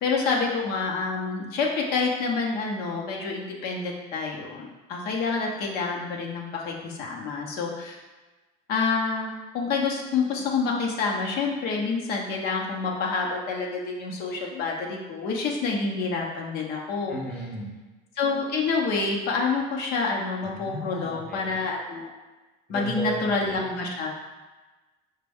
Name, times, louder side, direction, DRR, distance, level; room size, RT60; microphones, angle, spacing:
voice 1, 0.0-8.0 8.7-17.2 18.2-22.1 22.7-24.1, left 4 dB, 55° left, -1 dB, 0.8 m, -28 dB
voice 2, 17.1-17.7 20.5-21.5 22.7-23.3, equal, 5° left, -4 dB, 0.6 m, -34 dB
5.0 x 2.2 x 3.5 m, 1.2 s
cardioid pair, 135°, 19 cm